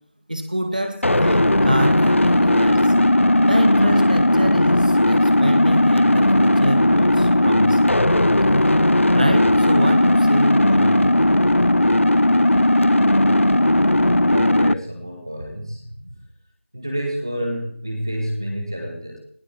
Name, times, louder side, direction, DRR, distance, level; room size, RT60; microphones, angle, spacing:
voice 1, 0.3-2.9 3.4-8.0 9.1-11.3, right 1 dB, 40° right, 7 dB, 1.9 m, -26 dB
sound 1, 1.0-14.7, left 1 dB, 85° left, 0.7 m, -16 dB
voice 2, 14.3-16.2 16.7-19.2, equal, 20° right, 3 dB, 1.8 m, -29 dB
19.0 x 7.5 x 7.2 m, 0.64 s
figure-of-eight pair, 180°, 7 cm